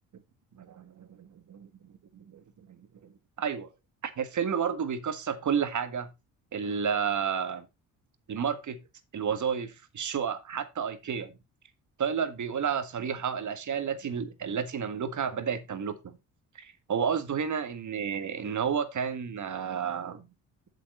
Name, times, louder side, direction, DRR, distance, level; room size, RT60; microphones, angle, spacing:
voice 1, 0.6-1.7 2.1-2.4 3.4-3.7 4.2-6.1 6.5-7.7 8.3-8.8 9.1-11.3 12.0-16.2 16.6-20.2, right 7 dB, 50° right, 1.7 m, -31 dB
8.1 x 7.5 x 3.9 m
supercardioid pair, 60°, 37 cm